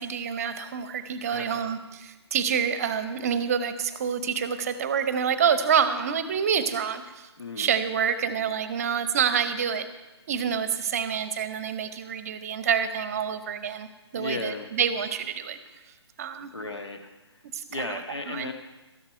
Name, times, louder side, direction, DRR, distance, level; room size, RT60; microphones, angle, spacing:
voice 1, 0.0-7.3 7.6-9.9 10.3-13.9 14.1-15.6 16.2-16.5 17.5-18.0 18.3-18.5, right 7 dB, 35° right, 12 dB, 0.7 m, -27 dB
voice 2, 1.3-1.7 7.4-7.7 14.2-14.7 16.5-17.4 17.7-18.5, left 2 dB, 75° left, 5 dB, 1.6 m, -35 dB
13.0 x 10.5 x 4.5 m, 1.1 s
figure-of-eight pair, 140°, 14 cm